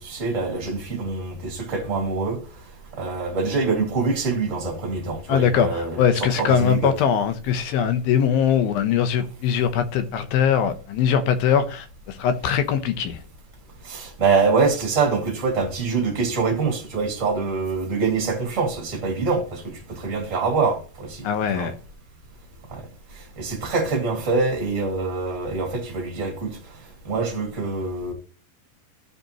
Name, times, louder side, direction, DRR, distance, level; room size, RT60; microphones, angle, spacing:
voice 1, 0.0-2.4 3.0-6.9 13.8-19.6 19.9-21.3 21.5-21.7 22.7-22.8 23.4-26.6 27.0-28.1, right 4 dB, 25° right, 2.1 m, -24 dB
voice 2, 5.3-13.2 21.2-21.8, left 8 dB, 80° left, 2.7 m, -21 dB
15.5 x 5.5 x 2.9 m
omnidirectional pair, 4.2 m